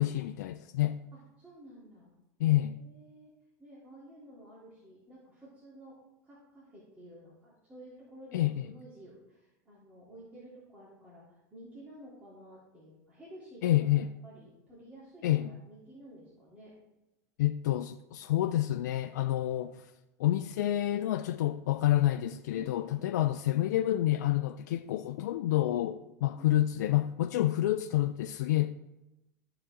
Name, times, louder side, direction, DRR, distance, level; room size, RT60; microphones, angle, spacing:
voice 1, 0.0-1.0 2.4-2.7 8.3-8.5 13.6-14.1 15.2-15.5 17.4-19.9 20.2-28.8, left 14 dB, 80° left, 0.4 m, -28 dB
voice 2, 1.1-2.1 2.4-3.3 3.6-16.7 18.2-18.3 22.5-23.1 25.7-25.8 26.3-26.6, right 1 dB, 15° right, 3.4 m, -52 dB
14.0 x 4.8 x 3.8 m
hypercardioid pair, 105°, 9 cm